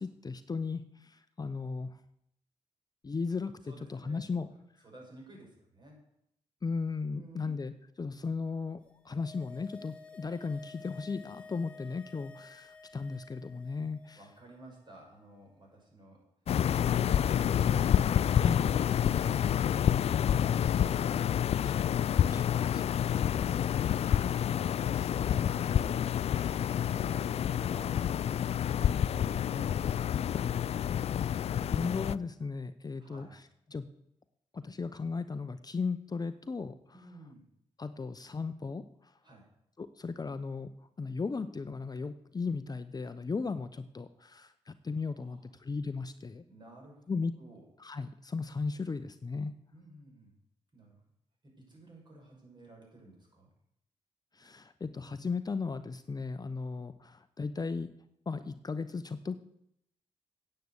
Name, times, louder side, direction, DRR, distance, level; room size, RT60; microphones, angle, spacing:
voice 1, 0.0-2.0 3.0-4.5 6.6-7.7 8.0-14.2 18.4-18.7 21.6-21.9 22.2-22.8 24.9-25.1 31.3-33.4 33.7-33.9 34.5-37.1 37.8-39.1 39.8-40.7 41.0-46.4 47.1-47.3 47.8-49.5 54.3-57.9 58.3-59.3, left 4 dB, 35° left, 11 dB, 0.7 m, -36 dB
voice 2, 3.7-4.5 4.8-6.0 7.1-7.6 14.2-16.2 24.4-28.1 28.5-30.1 33.0-33.4 36.9-37.4 39.2-39.5 45.2-45.4 46.5-47.1 47.4-47.6 49.7-50.3 50.7-51.0 51.6-53.5, right 2 dB, 40° right, -1 dB, 6.0 m, -54 dB
sound 1, 8.9-14.4 14.6-14.7, left 4 dB, 10° left, 2.2 m, -52 dB
sound 2, 16.5-32.2, left 9 dB, 60° left, 0.4 m, -28 dB
9.4 x 7.7 x 8.1 m, 0.75 s
supercardioid pair, 55°, 12 cm